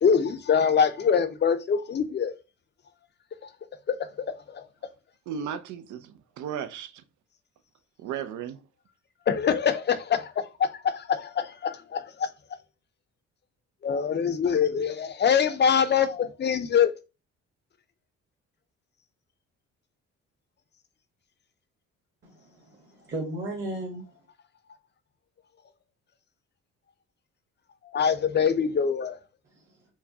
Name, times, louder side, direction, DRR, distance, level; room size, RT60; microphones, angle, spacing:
voice 1, 0.0-2.3 3.4-3.5 3.9-4.7 9.3-12.3 13.8-16.9 27.9-29.2, left 7 dB, 35° left, 0.5 m, -24 dB
voice 2, 5.3-7.0 8.0-8.7, right 8 dB, 75° right, 0.5 m, -35 dB
voice 3, 22.2-24.1 29.5-29.8, right 1 dB, 40° right, 1.2 m, -36 dB
4.5 x 2.2 x 2.7 m
cardioid pair, 90°, 30 cm